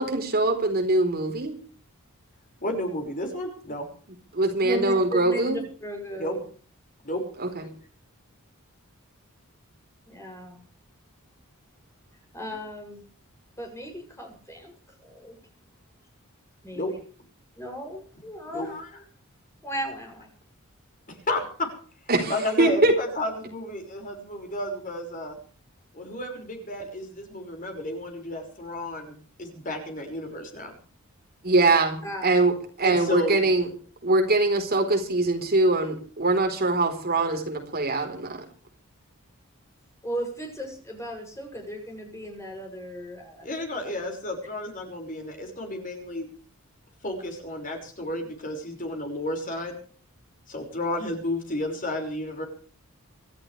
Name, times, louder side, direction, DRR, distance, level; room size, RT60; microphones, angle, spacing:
voice 1, 0.0-1.5 4.3-5.6 7.4-7.6 22.1-22.9 31.4-32.0 32.2-33.7 34.0-38.4, right 2 dB, 45° right, 4 dB, 4.2 m, -23 dB
voice 2, 2.6-3.9 6.2-6.4 7.0-7.2 16.7-16.9 18.5-18.9 21.3-21.7 22.3-25.4 25.9-30.7 32.8-33.5 43.4-46.3 47.0-49.7 50.5-52.4, left 1 dB, 40° left, 3 dB, 5.7 m, -32 dB
voice 3, 4.6-6.4 10.1-10.6 12.3-13.1 13.6-14.7 15.0-15.4 16.6-16.9 17.6-18.7 19.6-20.3 32.0-32.4 40.0-43.5, equal, 15° left, 2 dB, 7.3 m, -36 dB
26.0 x 13.5 x 3.4 m, 0.43 s
head